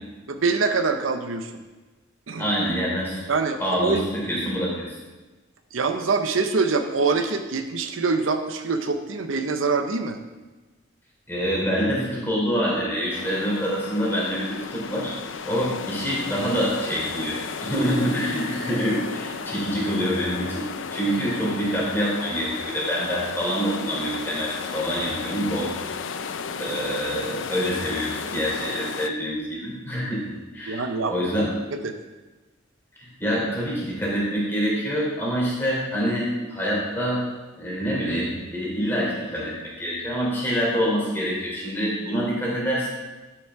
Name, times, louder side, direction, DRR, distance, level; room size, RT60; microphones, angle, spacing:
voice 1, 0.3-1.5 2.3-2.5 3.3-4.1 5.7-10.2 30.7-31.9, right 4 dB, 80° right, 7 dB, 0.7 m, -25 dB
voice 2, 2.4-3.2 3.6-5.0 11.3-15.1 15.4-25.7 26.6-30.3 30.5-31.5 33.2-37.2 37.6-42.9, equal, 10° left, -5 dB, 3.3 m, -26 dB
sound 1, 13.1-29.1, left 6 dB, 70° left, 0.5 m, -34 dB
11.5 x 6.1 x 4.7 m, 1.2 s
head